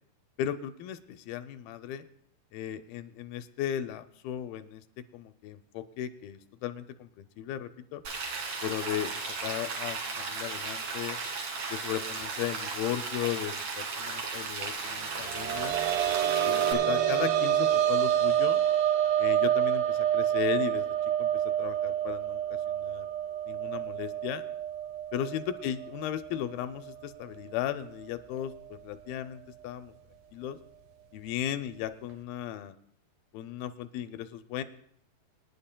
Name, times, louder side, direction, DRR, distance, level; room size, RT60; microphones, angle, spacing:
voice 1, 0.4-2.1 2.5-4.8 5.1-8.0 8.6-11.2 11.7-15.8 16.5-18.6 19.2-20.9 21.2-22.4 22.7-23.1 23.5-24.4 25.1-29.9 30.3-30.6 31.1-32.8 33.3-34.6, left 11 dB, 80° left, 10 dB, 2.3 m, -36 dB
Rain, 8.0-16.7, right 4 dB, 55° right, 2.8 m, -35 dB
sound 1, 15.1-26.5 26.9-27.0 28.5-28.6, right 10 dB, 75° right, 2.6 m, -28 dB
26.0 x 10.0 x 2.2 m, 0.67 s
omnidirectional pair, 4.3 m